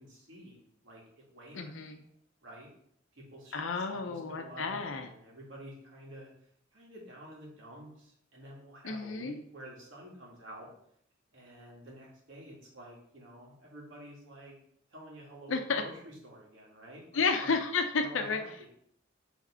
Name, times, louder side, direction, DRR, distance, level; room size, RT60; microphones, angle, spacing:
voice 1, 0.0-1.9 2.4-2.7 3.1-6.3 6.7-10.7 11.3-14.6 14.9-17.6 18.0-18.7, right 1 dB, 75° right, -3 dB, 2.0 m, -50 dB
voice 2, 1.5-2.0 3.5-5.1 8.8-9.4 15.5-15.8 17.1-18.4, left 4 dB, 85° left, 6 dB, 0.6 m, -31 dB
4.9 x 3.6 x 5.5 m, 0.70 s
head